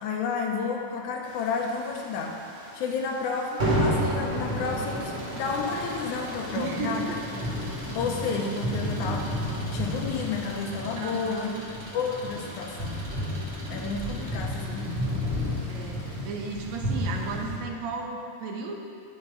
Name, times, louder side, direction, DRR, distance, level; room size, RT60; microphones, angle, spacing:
voice 1, 0.0-2.4 2.7-7.1 8.0-9.3 9.6-11.5 11.9-13.0 13.7-15.1, left 5 dB, 75° left, 2 dB, 2.0 m, -31 dB
sound 1, 1.4-2.4 2.7-2.9 3.2-3.3 3.6-17.6, equal, 20° right, 1.8 m, -31 dB
Engine, 3.6-16.2, right 1 dB, 40° right, 0.9 m, -45 dB
sound 2, 5.3-10.6, left 1 dB, 60° left, 1.0 m, -47 dB
voice 2, 6.5-7.2 11.0-11.6 14.3-14.9 15.7-18.8, right 4 dB, 70° right, 1 dB, 1.8 m, -35 dB
9.9 x 5.2 x 5.4 m, 2.4 s
omnidirectional pair, 3.8 m